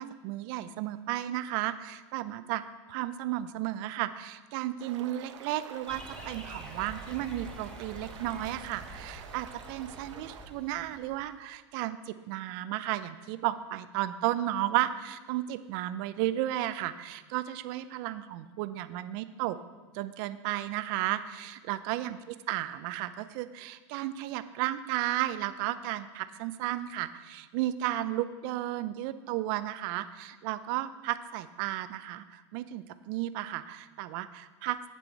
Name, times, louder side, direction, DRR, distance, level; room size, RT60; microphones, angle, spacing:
voice 1, 0.0-2.6 2.9-19.6 19.9-22.2 22.5-34.9, right 14 dB, 50° right, 12 dB, 0.5 m, -33 dB
sound 1, 4.8-10.5, right 8 dB, 85° right, 0.8 m, -49 dB
sound 2, 5.9-11.4, equal, 5° left, 1.0 m, -47 dB
8.4 x 7.0 x 4.6 m, 1.3 s
supercardioid pair, 125°, 15 cm